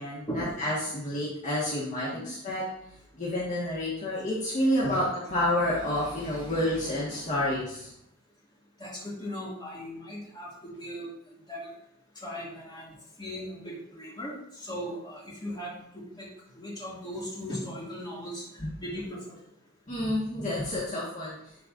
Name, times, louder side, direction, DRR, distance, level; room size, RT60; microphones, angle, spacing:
voice 1, 0.0-2.6 3.1-5.0 5.3-7.9 18.6-18.7 19.9-21.3, left 1 dB, 35° left, -7 dB, 1.5 m, -29 dB
voice 2, 8.8-11.1 11.5-11.7 12.2-12.9 13.2-15.8 16.2-16.3 16.6-18.4 18.8-19.4, equal, 20° left, -5 dB, 2.3 m, -37 dB
10.5 x 4.5 x 2.6 m, 0.77 s
head